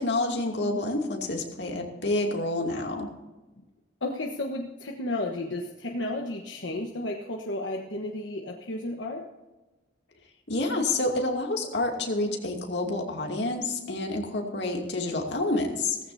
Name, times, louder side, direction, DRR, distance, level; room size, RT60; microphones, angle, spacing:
voice 1, 0.0-3.1 10.5-16.0, left 2 dB, 65° left, 1 dB, 2.5 m, -28 dB
voice 2, 4.0-9.3, left 1 dB, 90° left, 1 dB, 1.2 m, -33 dB
17.0 x 15.0 x 2.7 m, 1.1 s
head